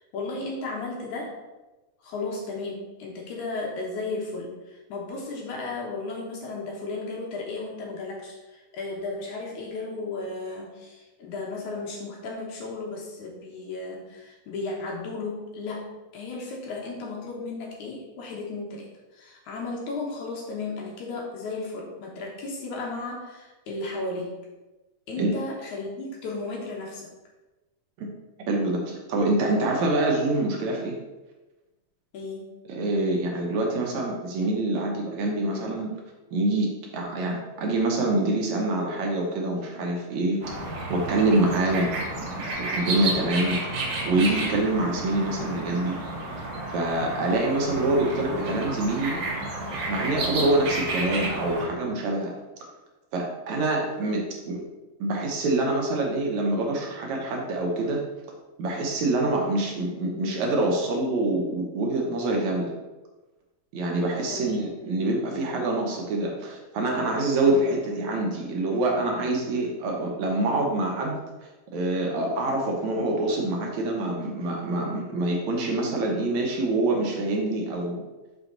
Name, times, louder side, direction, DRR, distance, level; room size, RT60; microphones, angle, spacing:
voice 1, 0.0-1.4 2.0-24.4 25.1-27.1 32.1-32.5 54.0-54.3 64.3-64.7, left 3 dB, 70° left, -2 dB, 2.5 m, -34 dB
voice 2, 28.5-31.0 32.7-35.9 36.3-40.4 40.9-43.6 44.1-46.0 46.7-49.2 49.9-52.3 53.1-54.6 55.0-58.0 58.6-62.7 63.7-71.2 71.7-78.0, right 2 dB, 70° right, 0 dB, 2.2 m, -26 dB
sound 1, 40.4-51.7, right 2 dB, 50° right, 1.6 m, -31 dB
6.2 x 6.0 x 3.9 m, 1.1 s
omnidirectional pair, 3.7 m